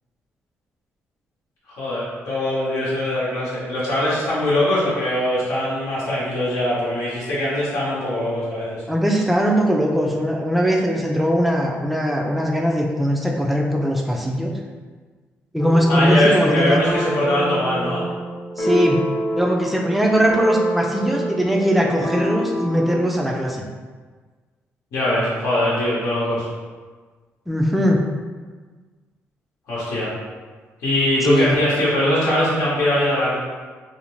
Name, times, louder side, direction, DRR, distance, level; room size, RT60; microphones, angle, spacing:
voice 1, 1.7-8.8 15.9-18.1 24.9-26.5 29.7-30.1 30.8-33.4, left 1 dB, 90° left, -9 dB, 0.8 m, -21 dB
voice 2, 8.9-14.5 15.5-16.8 18.6-19.1 19.4-23.6 27.5-28.1 31.2-31.6, equal, ahead, 0 dB, 0.3 m, -20 dB
sound 1, 15.6-16.2 16.9-23.1, equal, 40° left, 0.7 m, -26 dB
2.6 x 2.0 x 3.0 m, 1.4 s
cardioid pair, 110°, 5 cm